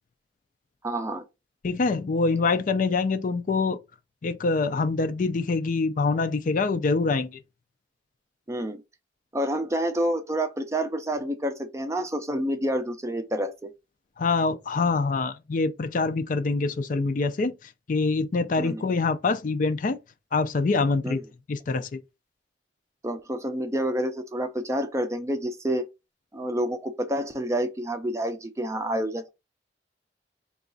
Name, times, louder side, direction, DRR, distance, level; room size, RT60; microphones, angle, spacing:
voice 1, 0.8-1.2 8.5-8.8 9.3-13.7 18.6-18.8 21.0-21.2 23.0-25.9 26.3-29.3, right 1 dB, 15° right, 0.4 m, -28 dB
voice 2, 1.6-3.8 4.2-7.4 14.2-17.5 17.9-20.0 20.3-21.2 21.5-21.9, left 3 dB, 45° left, 0.4 m, -25 dB
3.8 x 2.4 x 3.9 m
head